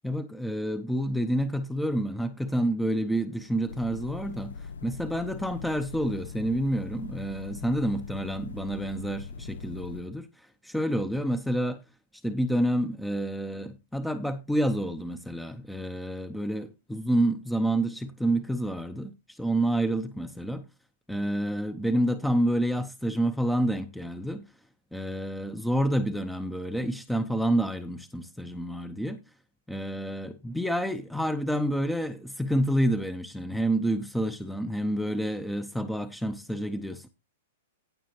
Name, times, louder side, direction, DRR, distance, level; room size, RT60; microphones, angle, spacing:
voice 1, 0.0-11.8 12.2-20.6 21.1-24.5 24.9-29.2 29.7-37.1, right 1 dB, ahead, 0.7 m, -28 dB
sound 1, 3.7-10.0, left 4 dB, 80° left, 0.5 m, -41 dB
17.0 x 6.1 x 3.0 m
hypercardioid pair, 125°, 0 cm